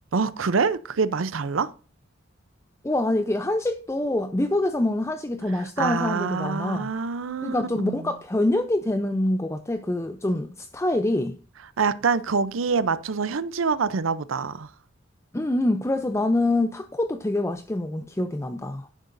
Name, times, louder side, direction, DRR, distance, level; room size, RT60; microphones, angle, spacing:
voice 1, 0.1-1.7 5.5-8.1 11.8-14.7, right 5 dB, 85° right, 0.6 m, -26 dB
voice 2, 2.8-6.9 7.4-11.3 15.3-18.9, left 1 dB, 15° left, 0.5 m, -25 dB
11.0 x 10.0 x 2.6 m
head